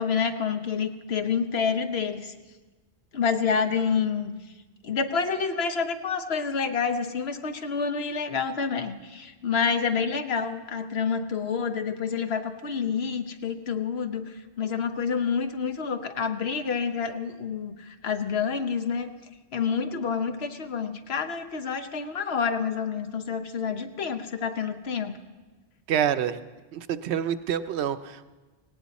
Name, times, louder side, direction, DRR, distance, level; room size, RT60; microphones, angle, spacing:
voice 1, 0.0-2.3 3.1-4.3 4.8-19.1 19.5-25.2, left 6 dB, 70° left, 8 dB, 1.1 m, -28 dB
voice 2, 25.9-26.4 26.7-28.2, right 9 dB, 80° right, 11 dB, 0.9 m, -27 dB
18.0 x 17.0 x 4.1 m, 1.3 s
omnidirectional pair, 1.1 m